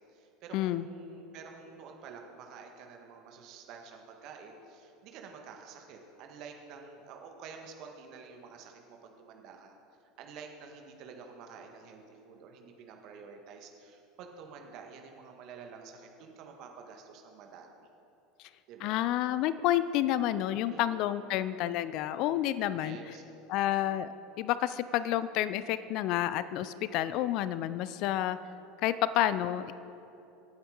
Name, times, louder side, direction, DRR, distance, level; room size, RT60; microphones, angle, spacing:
voice 1, 0.0-9.7 10.2-17.9 18.7-19.0 20.7-21.0 22.8-23.2 27.8-28.1, right 5 dB, 50° right, 3 dB, 1.8 m, -49 dB
voice 2, 0.5-0.9 18.8-23.0 23.5-28.4 28.8-29.7, left 13 dB, 50° left, 15 dB, 0.4 m, -29 dB
24.5 x 9.2 x 4.1 m, 2.8 s
figure-of-eight pair, 75°, 0 cm